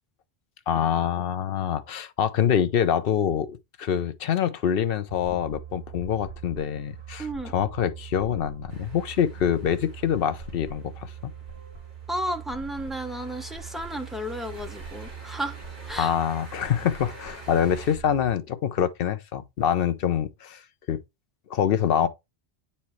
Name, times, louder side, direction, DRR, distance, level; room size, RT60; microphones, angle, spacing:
voice 1, 0.7-3.5 3.8-7.3 7.5-11.1 16.0-20.6 20.9-21.0 21.5-22.1, left 9 dB, 65° left, 0.7 m, -25 dB
sound 1, 5.1-18.4, right 8 dB, 75° right, 2.0 m, -42 dB
voice 2, 7.2-7.5 12.1-15.6 15.9-16.1, equal, ahead, 0.6 m, -33 dB
sound 2, 8.7-18.0, equal, 45° right, 2.3 m, -49 dB
8.5 x 4.3 x 3.1 m
omnidirectional pair, 1.1 m